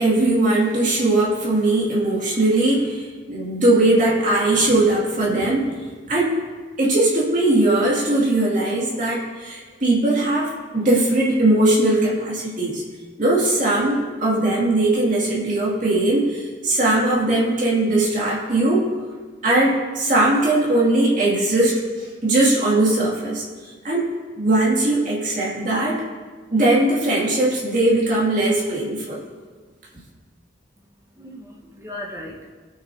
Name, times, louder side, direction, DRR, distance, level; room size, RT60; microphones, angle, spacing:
voice 1, 0.0-5.7 6.1-6.3 6.8-12.8 13.2-18.9 19.4-23.4 23.8-24.1 24.4-26.0 26.5-29.2, right 2 dB, 45° right, -5 dB, 2.4 m, -19 dB
voice 2, 30.8-32.5, left 1 dB, 15° right, -3 dB, 1.3 m, -38 dB
19.0 x 6.7 x 2.8 m, 1.5 s
head